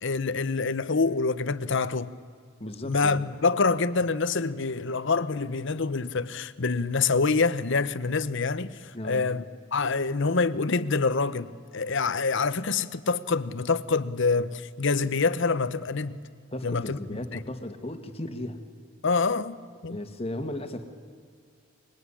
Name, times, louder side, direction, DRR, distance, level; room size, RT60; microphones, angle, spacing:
voice 1, 0.0-2.1 2.8-8.8 9.0-9.4 9.7-16.2 16.6-17.2 19.0-19.5 19.8-20.0, left 4 dB, 60° left, 0.9 m, -26 dB
voice 2, 2.6-3.3 8.9-9.2 16.5-18.6 19.9-20.9, left 1 dB, 30° left, 1.8 m, -35 dB
24.0 x 22.0 x 9.8 m
head